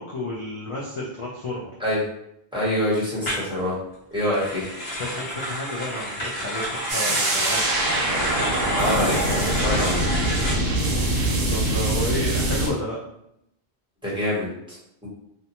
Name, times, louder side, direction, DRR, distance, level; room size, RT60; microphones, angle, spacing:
voice 1, 0.0-1.7 4.7-7.7 11.2-13.0, left 1 dB, 50° left, -5 dB, 0.4 m, -31 dB
voice 2, 2.5-3.8 4.1-4.6 8.7-10.0 14.0-15.1, equal, 5° right, -8 dB, 0.9 m, -26 dB
sound 1, 3.2-3.5 4.2-10.5, equal, 65° left, 1.0 m, -29 dB
sound 2, 6.9-12.7, right 1 dB, 60° right, 0.7 m, -23 dB
2.6 x 2.2 x 2.8 m, 0.79 s
omnidirectional pair, 1.1 m